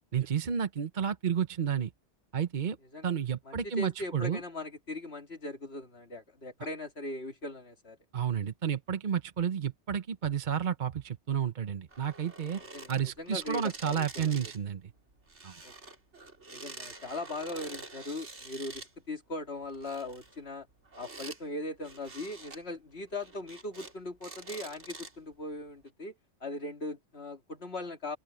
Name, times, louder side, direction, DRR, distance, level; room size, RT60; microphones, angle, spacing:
voice 1, 0.1-1.9 2.3-2.8 3.0-4.4 8.1-12.6 12.9-14.8 15.4-15.5, right 8 dB, 45° right, 1.0 m, -31 dB
voice 2, 3.5-8.0 12.7-14.5 15.6-15.7 16.5-20.7 21.0-26.1 26.4-28.2, left 2 dB, 65° left, 2.7 m, -39 dB
sound 1, 11.9-14.6 14.9-18.9 19.6-21.4 21.8-22.6 23.1-23.9 24.2-25.3 25.9-26.0, right 3 dB, 80° right, 3.0 m, -47 dB
open air
omnidirectional pair, 1.2 m